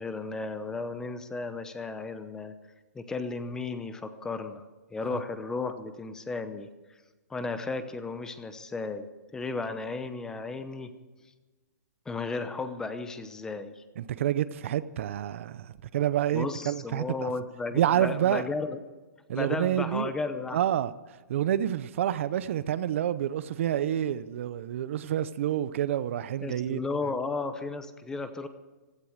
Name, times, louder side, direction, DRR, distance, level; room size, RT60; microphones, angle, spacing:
voice 1, 0.0-2.5 2.9-4.6 4.9-6.7 7.3-9.1 9.3-10.9 12.1-13.8 16.3-18.8 19.3-20.6 26.4-28.5, left 3 dB, 5° left, 0.8 m, -34 dB
voice 2, 14.0-17.3 17.7-18.5 19.3-20.1 20.5-20.9 21.3-26.8, right 11 dB, 45° right, 0.7 m, -28 dB
16.0 x 13.0 x 6.5 m
hypercardioid pair, 160°, 9 cm